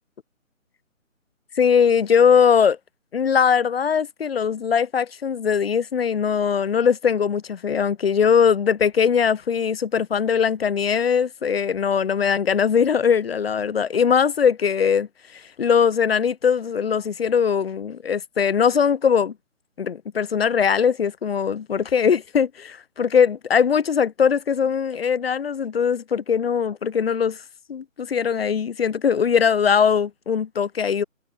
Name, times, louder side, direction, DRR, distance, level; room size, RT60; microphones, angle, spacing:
voice 1, 1.6-2.8 3.1-19.3 19.8-27.4 27.7-31.0, left 7 dB, 45° left, 5.7 m, -20 dB
figure-of-eight pair, 155°, 41 cm